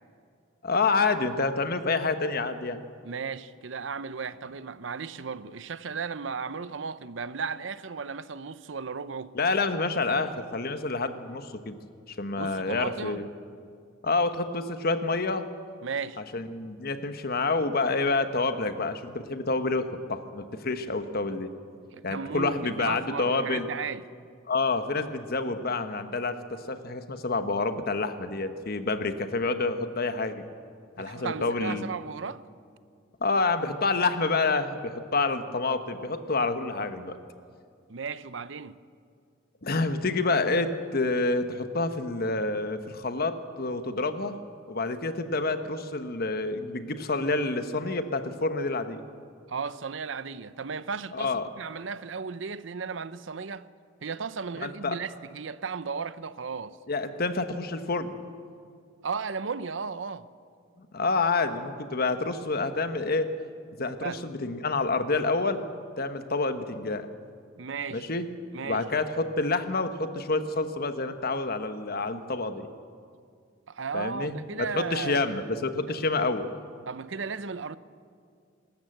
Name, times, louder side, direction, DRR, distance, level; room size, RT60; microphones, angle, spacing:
voice 1, 0.6-2.8 9.3-11.8 12.2-13.3 14.0-15.5 16.3-21.5 22.0-23.7 24.5-30.4 31.0-31.9 33.2-37.2 39.6-44.4 44.7-49.0 51.1-51.4 54.6-55.0 56.9-58.2 60.8-63.3 63.8-65.6 66.0-67.1 67.9-68.3 68.6-72.7 73.9-76.5, left 3 dB, 50° left, 1.2 m, -28 dB
voice 2, 3.0-9.4 12.4-13.2 15.8-16.2 21.9-24.1 31.0-32.4 37.9-38.8 49.5-53.7 54.0-56.8 59.0-60.3 64.0-64.2 67.6-68.1 68.5-68.9 73.7-75.2 75.9-76.0 76.9-77.8, right 5 dB, 70° right, 0.7 m, -35 dB
26.5 x 13.5 x 7.9 m
head